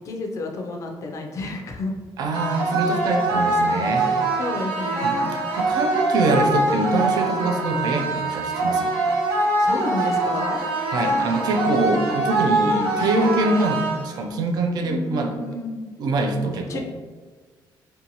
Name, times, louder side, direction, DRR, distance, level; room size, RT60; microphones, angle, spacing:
voice 1, 0.0-1.9 4.4-5.3 9.6-10.6 14.8-15.9 16.5-16.8, left 2 dB, 40° left, 2 dB, 0.4 m, -30 dB
voice 2, 2.2-4.4 5.0-5.2 5.5-8.9 10.9-15.3 16.0-16.8, right 2 dB, 55° right, 3 dB, 0.3 m, -24 dB
sound 1, 2.3-14.3, right 2 dB, 85° right, 0.7 m, -23 dB
2.6 x 2.2 x 2.7 m, 1.4 s
cardioid pair, 165°, 8 cm